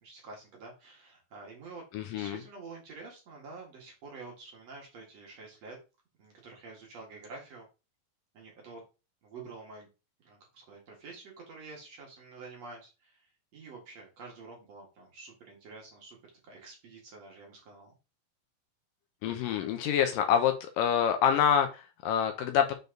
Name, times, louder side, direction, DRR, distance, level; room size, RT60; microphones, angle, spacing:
voice 1, 0.0-1.8 2.1-5.8 6.2-7.7 8.3-8.8 9.2-9.9 10.2-16.2 16.5-18.0, right 3 dB, 50° right, -1 dB, 2.7 m, -48 dB
voice 2, 1.9-2.4 19.2-22.7, left 8 dB, 75° left, 6 dB, 2.3 m, -26 dB
6.8 x 4.5 x 3.9 m, 0.29 s
omnidirectional pair, 4.2 m